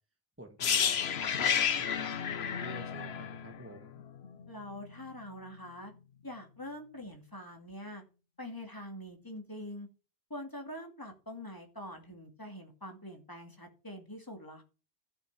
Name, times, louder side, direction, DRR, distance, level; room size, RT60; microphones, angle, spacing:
voice 1, 0.4-4.0, right 1 dB, 15° right, 1.5 m, -50 dB
sound 1, 0.6-4.5 4.7-4.9, left 8 dB, 85° left, 1.1 m, -31 dB
voice 2, 4.5-5.9 6.2-8.0 8.4-9.9 10.3-14.6, left 1 dB, 20° left, 2.4 m, -44 dB
12.5 x 6.4 x 6.0 m
omnidirectional pair, 1.0 m